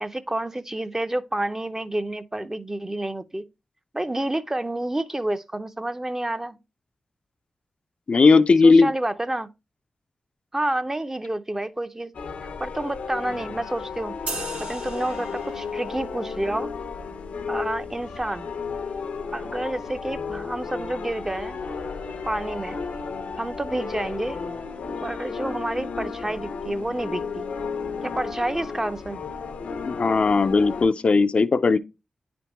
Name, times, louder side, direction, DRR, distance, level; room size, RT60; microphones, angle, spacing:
voice 1, 0.0-3.4 3.9-6.6 8.6-9.5 10.5-12.1 12.6-14.2 14.6-16.7 17.5-18.5 19.3-21.6 22.2-22.8 23.4-24.4 25.0-27.5 28.0-29.2, right 1 dB, 20° right, 0.5 m, -29 dB
voice 2, 8.1-8.9 29.9-31.8, left 4 dB, 55° left, 0.4 m, -17 dB
sound 1, 12.1-30.9, left 5 dB, 90° left, 0.7 m, -33 dB
sound 2, 14.3-15.9, right 3 dB, 80° right, 1.4 m, -36 dB
9.3 x 3.4 x 2.9 m
cardioid pair, 55°, 2 cm